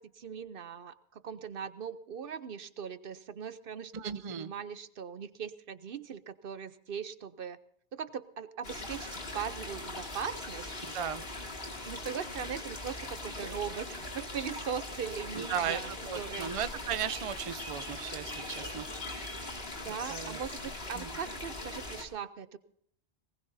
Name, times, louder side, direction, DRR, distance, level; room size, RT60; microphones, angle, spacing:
voice 1, 0.0-7.6 7.9-10.7 11.8-16.6 19.8-22.6, right 7 dB, 65° right, 13 dB, 0.9 m, -40 dB
voice 2, 3.9-4.5 10.8-11.2 15.3-19.6 20.1-20.4 20.9-21.1, right 8 dB, 40° right, 12 dB, 0.6 m, -37 dB
sound 1, 8.6-22.0, left 2 dB, 75° left, 2.8 m, -41 dB
20.5 x 19.0 x 2.7 m, 0.65 s
omnidirectional pair, 1.0 m